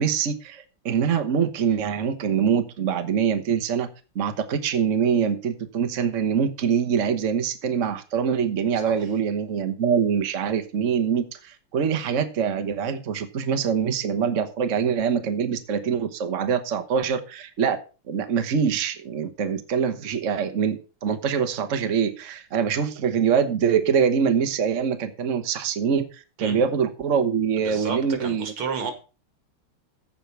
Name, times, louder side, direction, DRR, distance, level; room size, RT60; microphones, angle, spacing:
voice 1, 0.0-3.9 4.1-17.8 18.1-28.5, right 7 dB, 40° right, 1.3 m, -24 dB
voice 2, 27.6-28.9, right 5 dB, 80° right, 3.0 m, -32 dB
15.0 x 5.0 x 6.0 m
omnidirectional pair, 2.3 m